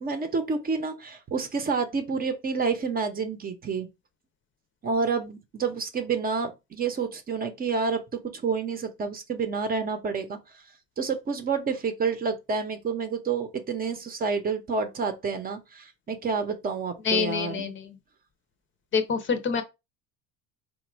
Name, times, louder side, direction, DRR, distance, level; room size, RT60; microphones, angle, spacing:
voice 1, 0.0-3.9 4.8-8.0 8.3-10.6 11.0-17.7, right 5 dB, 25° right, 0.7 m, -29 dB
voice 2, 17.0-17.9 18.9-19.6, left 6 dB, 35° left, 0.7 m, -26 dB
4.1 x 2.3 x 4.6 m
cardioid pair, 135°, 33 cm